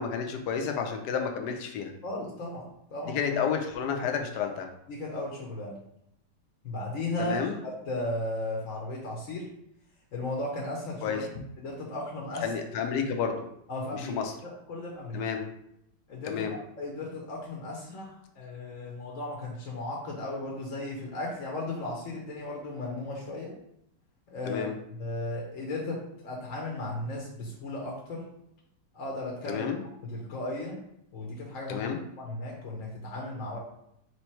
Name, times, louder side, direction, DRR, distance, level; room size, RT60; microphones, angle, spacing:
voice 1, 0.0-1.9 3.1-4.7 7.2-7.6 11.0-11.2 12.4-13.5 13.9-14.3 15.1-15.5 16.3-16.6 24.4-24.7 29.5-29.8 31.7-32.0, left 6 dB, 75° left, 4 dB, 1.2 m, -30 dB
voice 2, 2.0-2.6 2.9-3.2 4.9-5.8 6.6-7.4 7.9-9.4 10.1-11.2 11.6-12.5 13.7-14.2 14.4-15.2 16.1-16.5 16.8-23.5 24.3-28.2 28.9-29.7 30.0-30.8 31.1-31.9 32.2-33.6, left 2 dB, 55° left, -2 dB, 1.2 m, -35 dB
3.4 x 3.2 x 4.4 m, 0.76 s
omnidirectional pair, 1.9 m